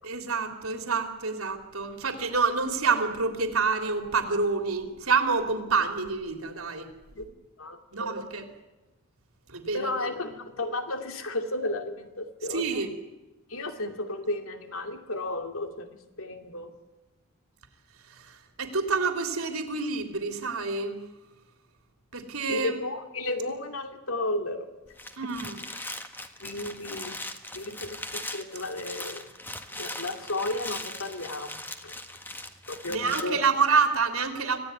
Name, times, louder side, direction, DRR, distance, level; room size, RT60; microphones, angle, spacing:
voice 1, 0.0-6.9 7.9-8.4 9.5-10.1 12.5-12.9 18.1-21.0 22.1-22.8 25.2-25.6 32.9-34.6, right 4 dB, 80° right, 5 dB, 3.3 m, -27 dB
voice 2, 7.6-8.1 9.7-12.8 13.5-16.7 22.5-24.7 25.2-25.3 25.7-25.8 26.4-27.2 27.5-29.3 29.8-31.9 32.7-33.4, left 2 dB, 70° left, 6 dB, 2.6 m, -33 dB
sound 1, 24.9-33.2, left 2 dB, 10° left, 1.6 m, -39 dB
26.0 x 16.5 x 9.6 m, 1.1 s
head